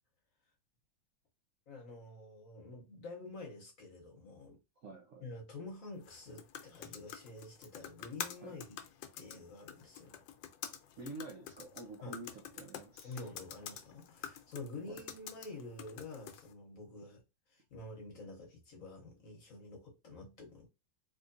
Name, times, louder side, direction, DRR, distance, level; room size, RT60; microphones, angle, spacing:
voice 1, 1.7-4.6 5.2-8.8 9.2-10.2 12.0-12.1 13.0-17.2 17.5-20.7, left 2 dB, 55° left, 1.1 m, -48 dB
voice 2, 4.8-5.2 8.4-8.6 11.0-13.3 14.9-15.0, right 3 dB, 70° right, 0.7 m, -48 dB
sound 1, 6.0-16.5, left 9 dB, 80° left, 1.3 m, -48 dB
3.7 x 3.0 x 2.5 m
omnidirectional pair, 2.1 m